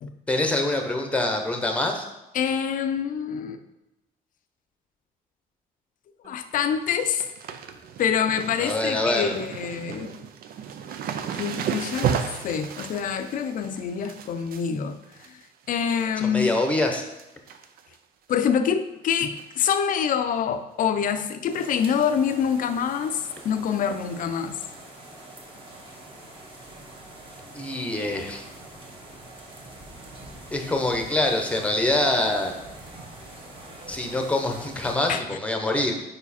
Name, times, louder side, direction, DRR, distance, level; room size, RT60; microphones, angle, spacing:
voice 1, 0.3-2.1 8.6-9.4 16.2-17.0 27.5-28.4 30.5-32.5 33.9-35.9, left 2 dB, 10° left, 3 dB, 0.9 m, -25 dB
voice 2, 2.3-3.6 6.2-7.2 8.0-10.2 11.3-15.0 15.7-16.5 18.3-24.6 35.1-35.2, left 7 dB, 50° left, 9 dB, 0.6 m, -26 dB
sound 1, 6.2-6.6 6.8-16.0 16.4-16.8 17.1-18.0 18.3-18.4 19.4-19.6 19.9-20.0 20.4-20.5 22.0-22.1 22.9-23.0, right 8 dB, 60° right, 0.5 m, -34 dB
sound 2, 21.5-35.0, right 1 dB, 30° right, 1.4 m, -44 dB
4.9 x 4.9 x 4.2 m, 0.96 s
cardioid pair, 110°, 17 cm